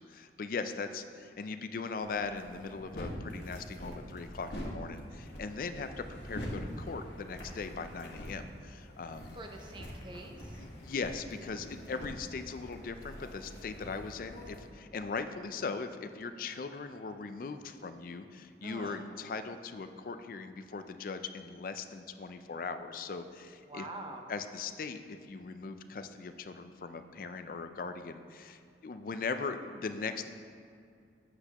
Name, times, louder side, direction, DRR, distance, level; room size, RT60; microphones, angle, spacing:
voice 1, 0.0-9.4 10.6-23.9 24.3-30.3, left 4 dB, 50° left, 9 dB, 0.4 m, -39 dB
sound 1, 2.0-14.6, equal, 85° left, 1.4 m, -44 dB
voice 2, 9.3-10.7 18.6-19.1 23.6-24.3, right 2 dB, 25° right, 3 dB, 0.6 m, -45 dB
8.1 x 7.8 x 2.9 m, 2.3 s
head